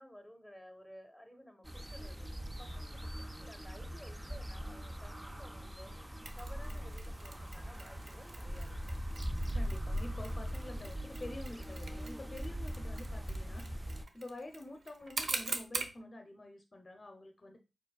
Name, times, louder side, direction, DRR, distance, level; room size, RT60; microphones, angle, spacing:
voice 1, 0.0-2.3 2.6-8.9, equal, ahead, 6 dB, 1.2 m, -55 dB
sound 1, 1.6-14.0, equal, 15° right, 0.5 m, -41 dB
Mechanisms, 6.3-16.0, right 3 dB, 70° right, 0.6 m, -45 dB
voice 2, 9.5-13.7 14.1-17.6, left 1 dB, 45° left, 4 dB, 0.7 m, -48 dB
4.5 x 4.3 x 2.3 m, 0.27 s
cardioid pair, 45°, 0 cm